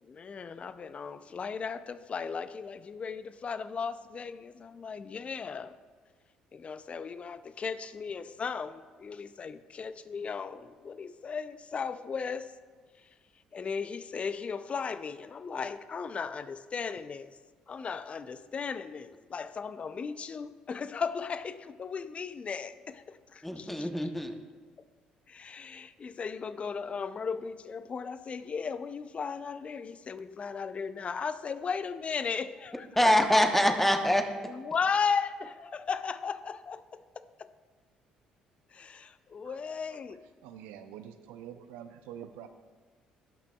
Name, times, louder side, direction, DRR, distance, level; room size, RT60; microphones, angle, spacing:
voice 1, 0.0-5.7 6.5-12.5 13.0-13.1 13.5-17.4 17.7-23.9 25.3-33.1 34.5-37.5 38.7-40.2, left 5 dB, 40° left, 14 dB, 0.5 m, -36 dB
voice 2, 23.4-24.4 33.0-34.3, left 1 dB, 5° left, 5 dB, 1.0 m, -24 dB
voice 3, 40.4-42.5, right 10 dB, 80° right, 9 dB, 0.5 m, -46 dB
17.0 x 5.9 x 2.3 m, 1.4 s
hypercardioid pair, 60°, 3 cm